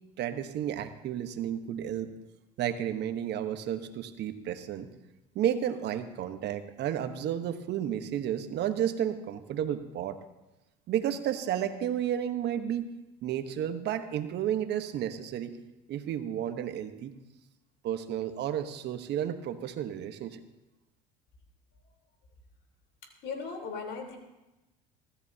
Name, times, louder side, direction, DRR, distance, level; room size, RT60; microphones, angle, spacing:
voice 1, 0.2-2.1 2.6-4.9 5.3-10.2 10.9-12.9 13.2-15.6 15.9-17.1 17.8-20.4, right 10 dB, 55° right, 8 dB, 1.3 m, -32 dB
voice 2, 23.2-24.2, left 5 dB, 60° left, 2 dB, 4.0 m, -37 dB
24.0 x 13.5 x 2.9 m, 1.0 s
hypercardioid pair, 75°, 20 cm